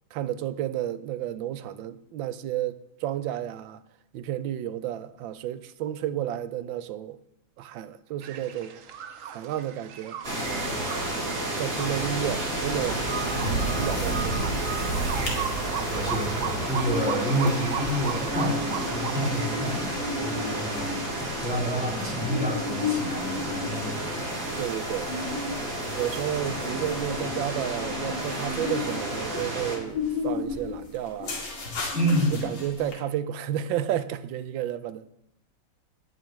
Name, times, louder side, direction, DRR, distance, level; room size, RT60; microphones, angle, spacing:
voice 1, 0.1-3.8 4.1-7.2 7.6-8.8 9.2-10.2 11.6-13.1 13.8-14.4 24.6-25.1 25.9-31.4 32.4-35.1, right 11 dB, 80° right, 1.4 m, -31 dB
sound 1, 8.2-19.6, right 8 dB, 65° right, 0.8 m, -37 dB
sound 2, 10.2-29.8, right 1 dB, 45° right, 2.9 m, -31 dB
sound 3, 13.7-14.3 14.6-14.7 15.0-15.4 15.8-32.9, left 4 dB, 85° left, 2.9 m, -35 dB
voice 2, 15.9-20.0 20.2-21.0 21.4-24.3 31.9-32.5, equal, 5° right, 4.1 m, -29 dB
18.0 x 8.1 x 3.1 m
omnidirectional pair, 2.1 m